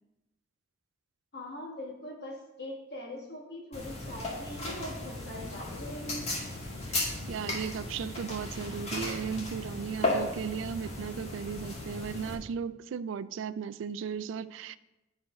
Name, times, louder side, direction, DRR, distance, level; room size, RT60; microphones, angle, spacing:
voice 1, 1.3-6.3, left 1 dB, 60° left, 1.4 m, -42 dB
sound 1, 3.7-12.3, left 2 dB, 35° left, 1.6 m, -35 dB
voice 2, 7.3-14.8, right 7 dB, 80° right, 0.3 m, -36 dB
9.5 x 4.3 x 4.8 m
head